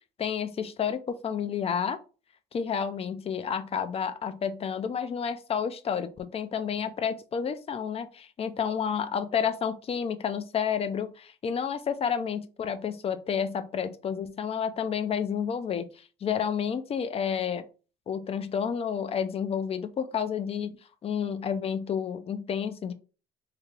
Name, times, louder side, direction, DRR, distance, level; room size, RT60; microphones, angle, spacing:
voice 1, 0.2-2.0 2.5-15.9 16.2-17.7 18.1-20.7 21.0-22.9, left 7 dB, 35° left, 11 dB, 0.5 m, -30 dB
3.3 x 2.4 x 4.4 m, 0.35 s
cardioid pair, 110°, 17 cm